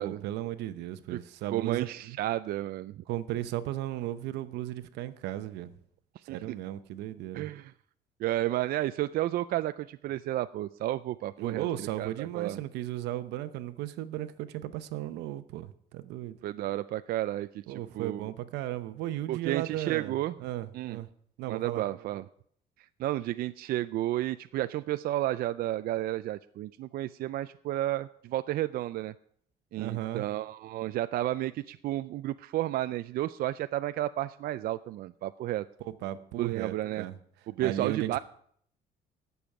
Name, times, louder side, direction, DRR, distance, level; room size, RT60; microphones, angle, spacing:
voice 1, 0.0-2.2 3.1-5.7 6.2-7.5 11.4-16.4 17.7-20.1 20.4-21.1 21.4-21.8 29.8-30.3 35.8-37.2 37.6-38.2, right 13 dB, 85° right, 11 dB, 0.8 m, -35 dB
voice 2, 1.5-3.0 6.3-6.4 7.3-7.7 8.2-11.7 12.0-12.6 16.4-18.2 19.3-20.4 20.7-21.0 21.5-22.3 23.0-29.1 29.7-35.7 36.4-37.1 37.5-38.2, right 14 dB, 60° right, 12 dB, 0.4 m, -32 dB
18.0 x 7.0 x 4.8 m, 0.64 s
cardioid pair, 110°, 17 cm